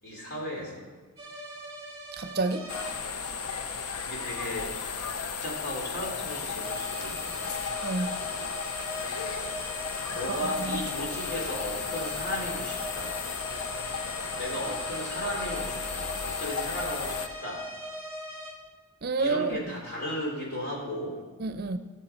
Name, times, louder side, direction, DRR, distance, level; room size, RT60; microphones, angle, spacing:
voice 1, 0.0-0.9 4.0-4.7 5.4-7.5 10.1-13.2 14.3-17.7 19.2-21.2, equal, 45° left, 3.2 m, -35 dB
sound 1, 1.2-2.9 6.6-18.5, equal, 20° right, 3.8 m, -40 dB
voice 2, 2.2-2.6 7.8-8.2 10.3-10.4 10.7-10.8 19.0-19.6 21.4-21.8, right 3 dB, 45° right, 0.6 m, -28 dB
sound 2, 2.7-17.3, left 5 dB, 85° left, 0.7 m, -34 dB
17.5 x 6.8 x 4.4 m
head